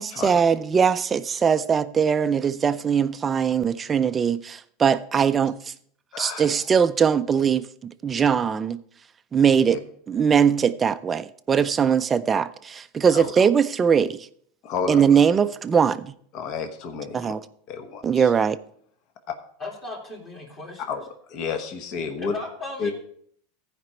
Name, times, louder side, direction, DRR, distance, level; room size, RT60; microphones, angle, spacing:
voice 1, 0.0-5.7 6.2-7.7 8.0-8.8 9.3-9.8 10.1-14.2 14.9-16.1 17.1-17.4 18.0-18.6, right 7 dB, 20° right, 0.4 m, -21 dB
voice 2, 6.1-6.6 9.7-9.8 13.1-13.3 14.6-15.0 16.3-17.3 17.7-18.3 20.9-22.3 22.8-22.9, left 5 dB, 45° left, 1.2 m, -31 dB
voice 3, 19.6-20.8 22.2-22.9, left 2 dB, 25° left, 2.3 m, -36 dB
15.0 x 5.1 x 4.4 m
supercardioid pair, 140°, 0 cm